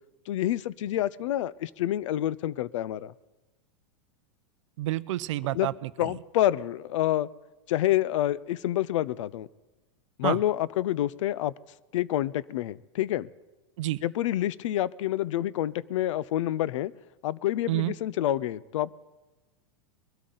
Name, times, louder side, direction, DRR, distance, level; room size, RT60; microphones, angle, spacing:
voice 1, 0.3-3.1 5.5-5.7 6.0-7.3 7.7-9.5 10.2-11.5 11.9-13.3 14.0-16.9 17.2-18.9, left 13 dB, 75° left, 21 dB, 0.5 m, -28 dB
voice 2, 4.8-6.1 10.2-10.4 13.8-14.0 17.7-17.9, right 16 dB, 70° right, 17 dB, 0.5 m, -29 dB
21.5 x 12.5 x 3.9 m, 1.1 s
supercardioid pair, 140°, 16 cm